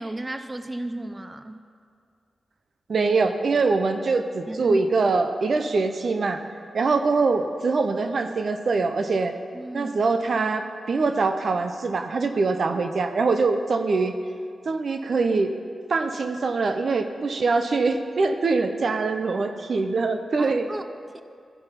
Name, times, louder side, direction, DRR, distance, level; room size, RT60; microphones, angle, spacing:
voice 1, 0.0-1.6 4.5-4.8 9.5-9.9 20.4-21.2, right 1 dB, 25° right, 9 dB, 0.6 m, -34 dB
voice 2, 2.9-6.4 6.7-9.3 9.7-14.1 14.7-15.5 15.9-20.7, right 4 dB, 65° right, 7 dB, 0.6 m, -23 dB
14.0 x 5.2 x 5.7 m, 2.3 s
cardioid pair, 50°, 0 cm